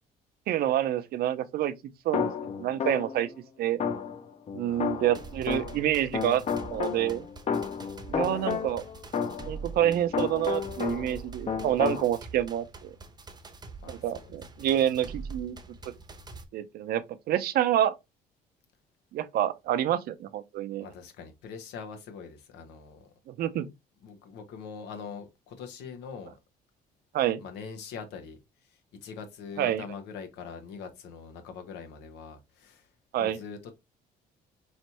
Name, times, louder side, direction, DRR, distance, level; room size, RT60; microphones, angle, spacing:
voice 1, 0.5-1.7 2.0-2.3 2.6-3.3 3.6-3.8 4.5-6.4 6.7-7.3 8.1-8.8 9.5-12.9 13.9-15.6 16.5-17.9 19.1-20.9 23.3-23.7 27.1-27.4 29.6-29.8 33.1-33.4, right 11 dB, 65° right, 0.6 m, -27 dB
sound 1, 2.1-3.3 3.8-5.9 6.1-11.2 11.5-12.1, left 6 dB, 40° left, 0.7 m, -32 dB
voice 2, 4.6-5.3 8.4-8.6 13.8-14.3 20.8-23.1 24.0-26.3 27.4-32.9 33.2-33.7, left 6 dB, 85° left, 1.1 m, -43 dB
sound 2, 5.1-16.4, right 4 dB, 25° right, 0.7 m, -45 dB
4.3 x 3.2 x 2.9 m
cardioid pair, 110°, 17 cm